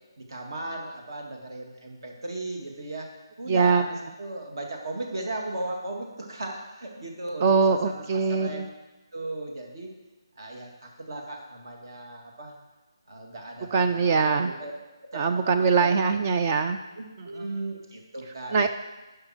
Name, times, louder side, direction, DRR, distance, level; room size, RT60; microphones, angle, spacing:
voice 1, 0.2-8.7 9.1-9.9 10.4-12.6 13.1-14.7 15.0-15.9 17.0-18.7, right 2 dB, 55° right, 1 dB, 2.0 m, -36 dB
voice 2, 3.5-3.8 7.4-8.7 13.7-14.5 15.1-16.8 17.2-17.4 18.5-18.7, right 5 dB, 25° right, 7 dB, 0.4 m, -22 dB
10.5 x 5.5 x 4.9 m, 1.1 s
figure-of-eight pair, 165°, 3 cm